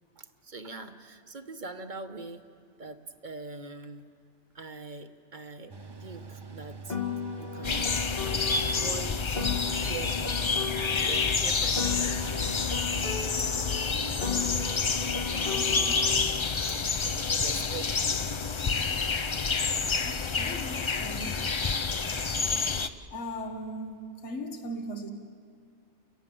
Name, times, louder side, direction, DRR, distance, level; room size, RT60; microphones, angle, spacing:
voice 1, 0.2-2.4 2.8-4.0 4.5-5.7 6.0-7.0 7.4-9.4 9.8-10.1 11.0-12.1 13.8-14.8 15.2-16.2 17.4-18.3, right 4 dB, 45° right, 7 dB, 1.2 m, -43 dB
Mechanical fan, 5.7-14.1, right 4 dB, 25° right, 0.8 m, -44 dB
Piano, 6.9-11.4 11.7-16.4, left 7 dB, 55° left, 1.8 m, -36 dB
sound 1, 7.6-22.9, left 5 dB, 35° left, 0.5 m, -28 dB
voice 2, 20.0-21.5 22.6-22.8 23.1-25.1, equal, 75° left, 5 dB, 1.8 m, -38 dB
30.0 x 17.5 x 7.7 m, 2.2 s
omnidirectional pair, 1.2 m